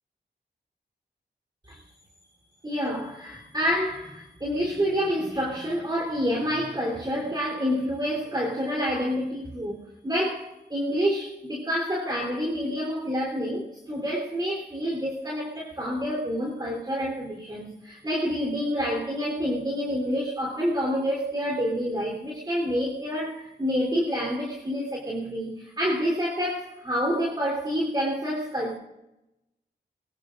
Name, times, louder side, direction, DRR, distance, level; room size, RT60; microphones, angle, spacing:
voice 1, 2.6-28.8, equal, 25° right, -2 dB, 3.6 m, -28 dB
22.0 x 21.5 x 2.6 m, 0.94 s
wide cardioid pair, 90°, 18 cm